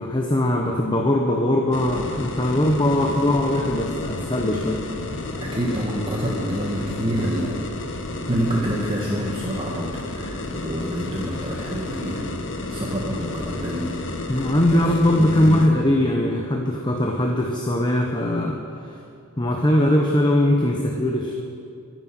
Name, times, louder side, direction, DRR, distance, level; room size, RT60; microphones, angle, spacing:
voice 1, 0.0-4.8 14.3-18.9 19.4-21.3, left 1 dB, 20° left, 1 dB, 1.0 m, -21 dB
sound 1, 1.7-15.7, left 2 dB, 60° left, 1.3 m, -31 dB
voice 2, 5.4-7.6 8.2-14.8 15.2-15.6, equal, 25° right, -3 dB, 1.6 m, -28 dB
23.0 x 9.3 x 6.3 m, 2.5 s
head